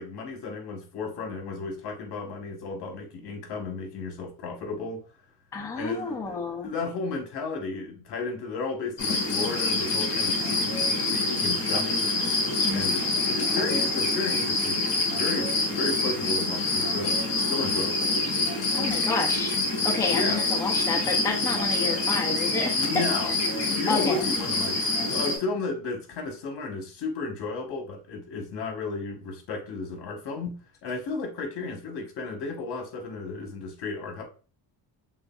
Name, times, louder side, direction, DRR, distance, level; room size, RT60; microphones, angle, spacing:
voice 1, 0.0-5.0 5.7-12.1 12.7-18.1 20.1-20.4 22.7-23.3 23.8-34.2, left 3 dB, 60° left, 1.2 m, -33 dB
voice 2, 5.5-6.7 12.6-13.0 18.7-19.6 19.8-24.3, left 4 dB, 10° left, 0.4 m, -30 dB
sound 1, 9.0-25.4, left 2 dB, 45° left, 1.8 m, -26 dB
6.2 x 2.4 x 2.3 m
cardioid pair, 160°, 44 cm